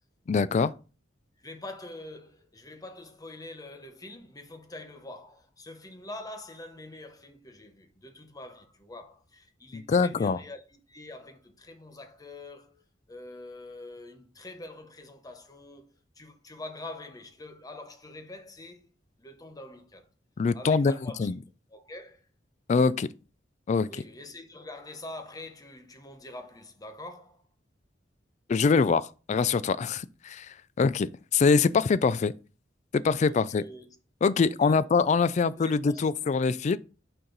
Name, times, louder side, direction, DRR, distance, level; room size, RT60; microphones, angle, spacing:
voice 1, 0.3-0.7 9.7-10.4 20.4-20.9 21.2-21.3 22.7-23.1 23.7-23.9 28.5-30.5 30.8-32.3 32.9-33.6 34.2-36.8, left 5 dB, 40° left, 0.3 m, -24 dB
voice 2, 1.4-12.8 13.1-15.9 16.2-18.9 19.2-20.1 20.5-21.4 21.7-22.2 23.9-27.4 33.3-33.9 34.4-34.8 35.5-36.3, left 2 dB, 20° left, 0.9 m, -45 dB
6.4 x 4.4 x 3.9 m
head